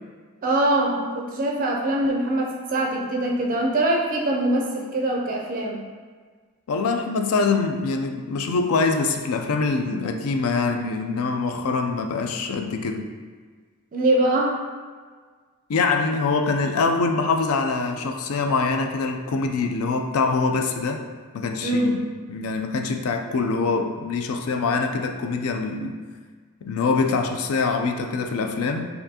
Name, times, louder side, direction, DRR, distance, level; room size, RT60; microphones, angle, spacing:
voice 1, 0.4-5.8 13.9-14.6 21.6-22.0, right 1 dB, 40° right, -1 dB, 0.4 m, -23 dB
voice 2, 6.7-13.1 15.7-21.0 21.3-22.0 22.3-26.0 26.6-28.9, left 4 dB, 70° left, 5 dB, 0.4 m, -24 dB
4.4 x 2.6 x 2.8 m, 1.5 s
head